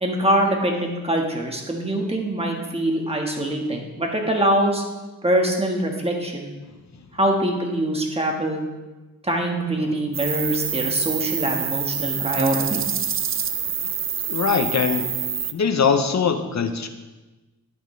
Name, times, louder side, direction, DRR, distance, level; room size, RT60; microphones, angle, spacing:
voice 1, 0.0-4.8 5.2-6.5 7.2-8.6 9.3-12.8, right 1 dB, 15° right, 1 dB, 1.6 m, -23 dB
sound 1, 10.1-15.5, right 7 dB, 40° right, 0.4 m, -26 dB
voice 2, 14.3-15.1 15.5-16.9, left 6 dB, 55° left, 7 dB, 0.9 m, -21 dB
10.5 x 8.7 x 3.3 m, 1.2 s
wide cardioid pair, 95°, 33 cm